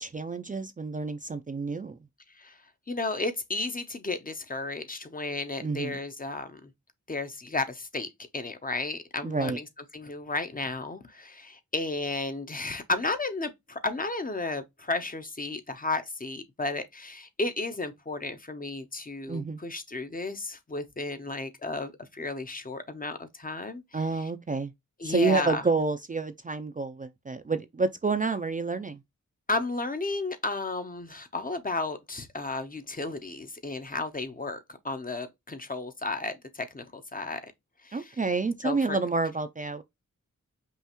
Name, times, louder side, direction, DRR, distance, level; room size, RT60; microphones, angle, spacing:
voice 1, 0.0-2.0 5.6-6.0 9.2-9.6 19.3-19.6 23.9-24.7 25.0-29.0 37.9-39.8, right 4 dB, 25° right, 0.4 m, -29 dB
voice 2, 2.9-6.7 7.1-8.1 8.3-9.7 9.9-23.8 24.2-24.3 25.0-25.6 29.5-34.6 34.8-37.4 37.8-38.2 38.6-39.0, left 2 dB, 30° left, 0.6 m, -33 dB
5.5 x 2.4 x 2.9 m
wide cardioid pair, 80°, 31 cm